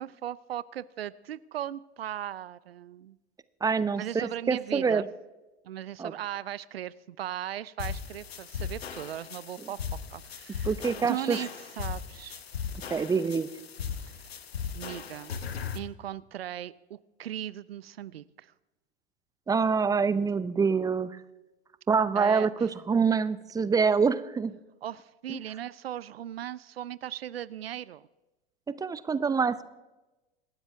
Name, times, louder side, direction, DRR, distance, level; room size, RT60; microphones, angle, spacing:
voice 1, 0.0-3.2 4.0-5.1 5.6-9.8 10.1-10.8 11.0-11.5 11.8-12.4 14.1-14.2 14.7-15.3 15.7-18.5 22.2-22.7 24.8-28.1, right 11 dB, 70° right, 19 dB, 0.6 m, -38 dB
voice 2, 3.6-5.1 6.0-6.1 10.6-11.4 12.9-13.5 19.5-21.2 21.9-24.5 25.3-25.4 28.8-29.6, right 5 dB, 10° right, 15 dB, 0.7 m, -26 dB
sound 1, 7.8-15.8, left 7 dB, 75° left, 1.2 m, -38 dB
27.0 x 12.5 x 3.5 m, 1.1 s
figure-of-eight pair, 85°, 31 cm